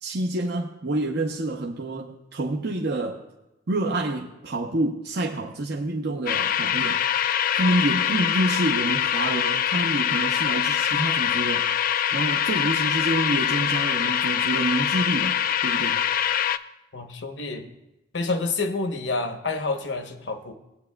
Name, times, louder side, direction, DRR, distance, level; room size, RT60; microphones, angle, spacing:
voice 1, 0.0-3.2 3.7-7.0 7.5-11.7 12.1-16.0, right 1 dB, 60° right, 0 dB, 0.7 m, -27 dB
sound 1, 6.3-16.6, left 9 dB, 45° left, 0.3 m, -24 dB
voice 2, 16.9-17.7 18.1-20.5, left 3 dB, 65° left, 7 dB, 1.0 m, -28 dB
19.0 x 8.7 x 2.3 m, 0.96 s
head